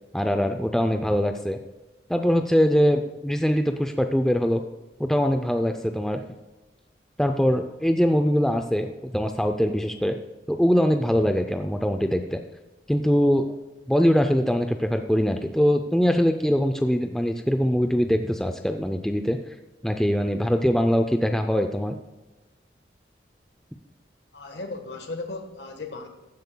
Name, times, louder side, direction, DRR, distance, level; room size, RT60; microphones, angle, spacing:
voice 1, 0.1-1.6 2.1-4.6 5.0-6.2 7.2-10.2 10.5-12.4 12.9-13.4 13.9-19.4 19.8-22.0, equal, 5° left, 5 dB, 0.4 m, -22 dB
voice 2, 24.3-26.1, left 3 dB, 80° left, 5 dB, 1.3 m, -36 dB
15.0 x 10.5 x 2.3 m, 1.1 s
head